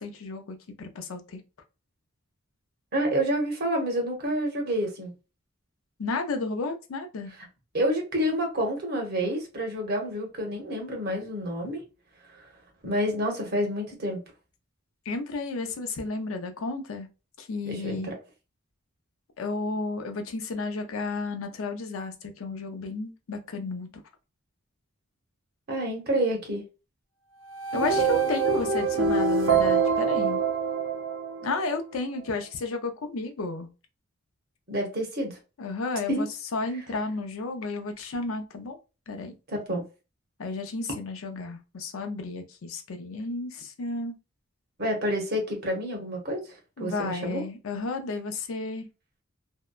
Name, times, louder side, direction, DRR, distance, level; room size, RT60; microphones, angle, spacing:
voice 1, 0.0-1.4 6.0-7.3 15.1-17.1 17.4-18.1 19.4-23.9 27.7-30.4 31.4-33.7 35.6-38.8 39.1-39.3 40.4-44.1 46.8-48.9, left 3 dB, 80° left, 0.5 m, -32 dB
voice 2, 2.9-5.1 7.7-11.8 12.3-12.4 12.8-14.2 17.6-18.1 25.7-26.6 34.7-35.4 36.1-36.2 39.5-39.8 44.8-46.4 46.8-47.4, equal, 50° right, 0.9 m, -28 dB
sound 1, 27.5-31.8, right 5 dB, 65° right, 0.5 m, -25 dB
2.7 x 2.1 x 2.2 m
head